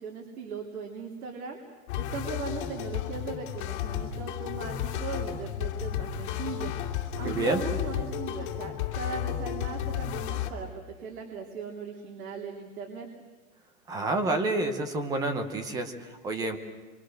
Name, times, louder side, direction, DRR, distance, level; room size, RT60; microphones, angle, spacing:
voice 1, 0.0-1.6 2.0-6.8 7.2-13.1, right 5 dB, 75° right, 0 dB, 3.7 m, -38 dB
sound 1, 1.9-10.5, left 10 dB, 35° left, 2.8 m, -33 dB
voice 2, 7.2-7.6 13.9-16.6, right 2 dB, 10° right, 8 dB, 0.9 m, -29 dB
29.5 x 25.0 x 6.6 m, 1.3 s
supercardioid pair, 175°, 43 cm